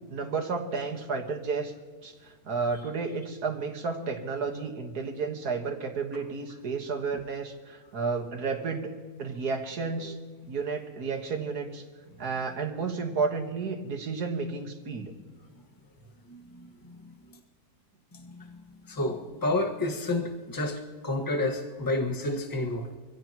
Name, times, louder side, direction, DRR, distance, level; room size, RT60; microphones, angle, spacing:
voice 1, 0.1-1.7 2.0-8.9 9.2-10.2 10.5-11.8 12.2-15.1, right 4 dB, 85° right, 4 dB, 2.1 m, -32 dB
voice 2, 16.3-17.1 18.1-18.6 18.9-22.9, left 2 dB, 15° left, 1 dB, 1.5 m, -30 dB
25.5 x 16.0 x 3.0 m, 1.6 s
omnidirectional pair, 1.6 m